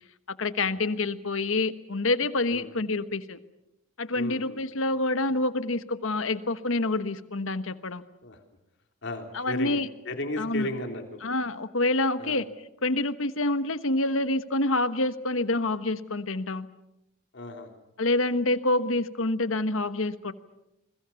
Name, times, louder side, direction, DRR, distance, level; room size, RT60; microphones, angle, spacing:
voice 1, 0.4-3.4 4.0-8.0 9.3-9.9 10.4-10.7 11.2-12.5 12.8-16.7 18.0-20.3, left 2 dB, 70° left, 12 dB, 1.2 m, -27 dB
voice 2, 4.1-4.6 8.2-8.4 9.0-9.8 10.0-11.2 12.2-12.4 17.3-17.7, left 1 dB, 55° left, 5 dB, 3.3 m, -35 dB
28.5 x 21.0 x 7.1 m, 0.88 s
head